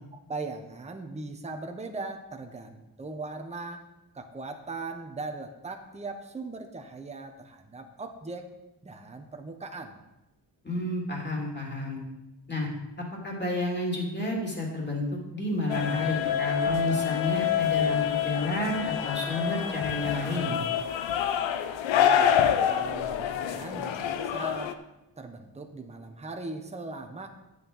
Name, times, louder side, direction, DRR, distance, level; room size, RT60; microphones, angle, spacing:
voice 1, 0.1-3.8 4.1-8.5 8.8-10.0 21.9-22.3 22.7-24.7 25.2-27.3, right 3 dB, 15° right, 4 dB, 1.0 m, -39 dB
voice 2, 10.6-12.0 12.5-12.7 13.2-15.0 15.3-20.6, left 2 dB, 25° left, -2 dB, 3.1 m, -30 dB
sound 1, 15.7-24.7, left 9 dB, 90° left, 0.8 m, -27 dB
9.8 x 7.9 x 5.5 m, 0.95 s
cardioid pair, 120°, 44 cm